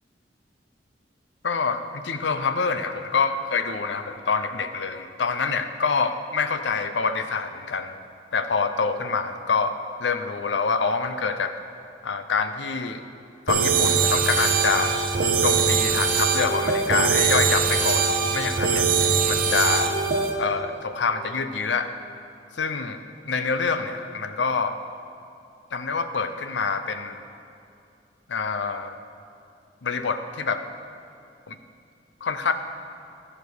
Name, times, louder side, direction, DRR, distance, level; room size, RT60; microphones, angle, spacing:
voice 1, 1.4-7.9 8.3-9.7 10.0-11.6 12.0-13.0 13.5-15.0 15.4-18.9 19.3-20.0 20.4-21.9 22.6-23.0 23.2-24.7 25.7-27.2 28.3-29.0 29.8-30.6 31.5-31.6 32.2-32.5, left 5 dB, 70° left, 9 dB, 0.6 m, -26 dB
sound 1, 13.5-20.3, right 5 dB, 50° right, 0.8 m, -22 dB
13.5 x 5.1 x 6.2 m, 2.6 s
head